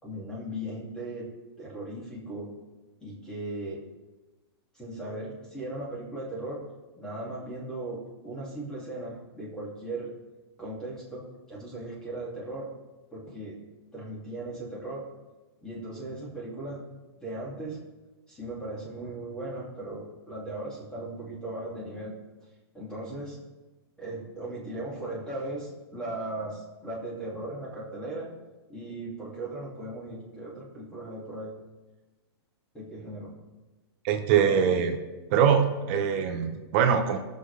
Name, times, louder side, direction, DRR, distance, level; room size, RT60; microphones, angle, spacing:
voice 1, 0.0-1.3 1.6-2.5 3.0-3.8 4.7-6.6 6.9-10.1 10.6-12.7 13.1-13.6 13.9-15.1 15.6-16.8 17.2-17.8 18.3-22.2 22.7-23.4 24.0-28.3 28.7-31.5 32.7-33.3, right 1 dB, 5° left, -5 dB, 2.2 m, -37 dB
voice 2, 34.0-35.0 35.3-37.2, right 7 dB, 30° right, 5 dB, 0.8 m, -23 dB
19.5 x 6.7 x 3.3 m, 1.2 s
hypercardioid pair, 170°, 13 cm